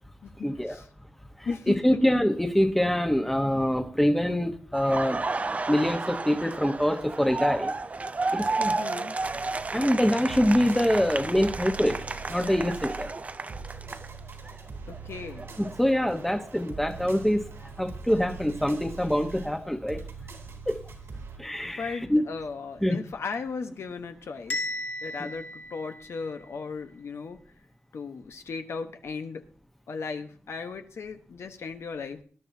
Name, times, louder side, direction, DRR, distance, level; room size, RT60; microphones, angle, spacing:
voice 1, 0.4-0.8 1.4-5.2 5.7-7.7 8.3-8.7 9.7-12.0 12.3-13.1 15.6-17.4 17.8-20.0 20.7-20.8 21.4-22.2 22.8-23.0 25.2-25.3, equal, 5° left, 6 dB, 1.1 m, -25 dB
voice 2, 1.4-1.8 8.8-9.1 14.9-15.5 21.6-24.6 25.0-27.4 27.9-29.4 29.9-32.2, left 4 dB, 80° left, 6 dB, 1.1 m, -36 dB
Laughter, 4.7-14.6 14.9-16.9, right 3 dB, 30° right, 0.5 m, -33 dB
sound 1, 9.2-21.4, right 5 dB, 80° right, 3.4 m, -43 dB
Bell, 24.5-26.5, left 1 dB, 40° left, 1.9 m, -35 dB
19.5 x 11.0 x 2.8 m, 0.42 s
wide cardioid pair, 115°, 4 cm